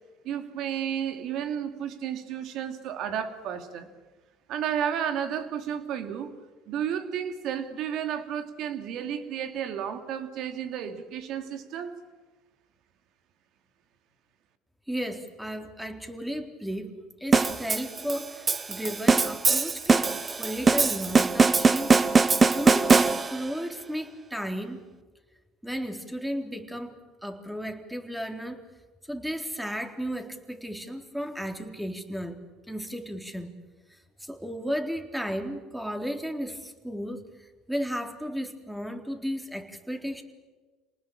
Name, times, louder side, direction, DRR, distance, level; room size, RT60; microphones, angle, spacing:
voice 1, 0.2-3.9 4.5-6.3 6.7-11.9, right 9 dB, 65° right, 8 dB, 2.9 m, -32 dB
voice 2, 14.9-16.9 17.2-22.0 22.5-24.8 25.6-26.9 27.2-28.6 29.0-32.4 32.7-33.5 33.9-40.2, equal, 5° right, 5 dB, 3.9 m, -34 dB
sound 1, 17.3-23.5, right 4 dB, 25° right, 1.4 m, -22 dB
28.5 x 19.5 x 8.8 m, 1.3 s
supercardioid pair, 80°, 0 cm